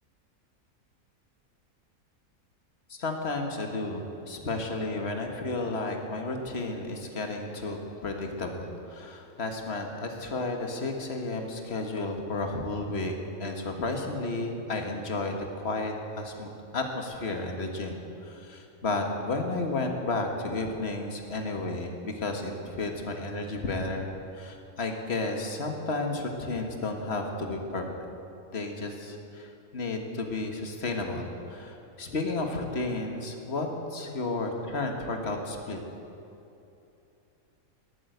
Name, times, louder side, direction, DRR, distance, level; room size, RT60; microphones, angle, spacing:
voice 1, 2.9-27.9 28.5-35.8, left 2 dB, 45° left, 3 dB, 1.8 m, -32 dB
19.0 x 9.5 x 8.0 m, 2.8 s
omnidirectional pair, 1.5 m